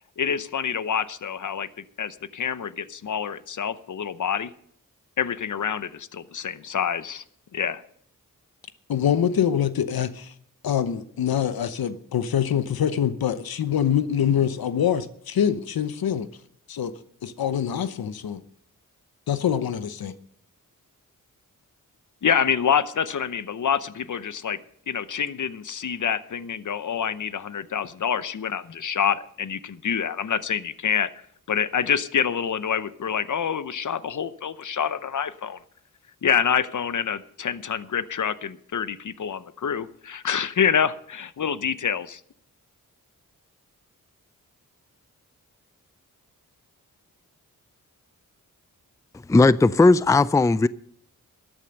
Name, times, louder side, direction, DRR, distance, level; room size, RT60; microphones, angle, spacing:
voice 1, 0.2-4.5 5.2-7.2 7.5-7.8 22.2-24.6 24.9-31.1 31.5-35.6 36.2-42.2, left 7 dB, 55° left, 0.8 m, -27 dB
voice 2, 8.9-10.3 10.6-16.3 16.7-16.9 17.2-18.4 19.3-20.1, left 9 dB, 85° left, 0.9 m, -24 dB
voice 3, 49.3-50.7, left 3 dB, 10° left, 0.4 m, -17 dB
13.0 x 8.9 x 6.5 m
cardioid pair, 55°, 35 cm